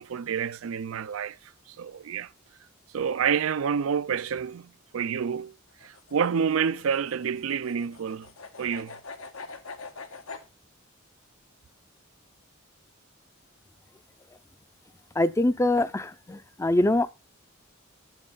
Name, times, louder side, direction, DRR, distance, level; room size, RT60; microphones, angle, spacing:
voice 1, 0.0-1.4 1.7-2.3 2.9-5.5 5.8-8.3 8.6-9.0, right 7 dB, 85° right, 0.4 m, -28 dB
sound 1, 5.7-10.5, left 4 dB, 90° left, 1.4 m, -43 dB
voice 2, 15.2-17.1, left 1 dB, 15° left, 0.4 m, -24 dB
10.5 x 7.3 x 3.9 m
head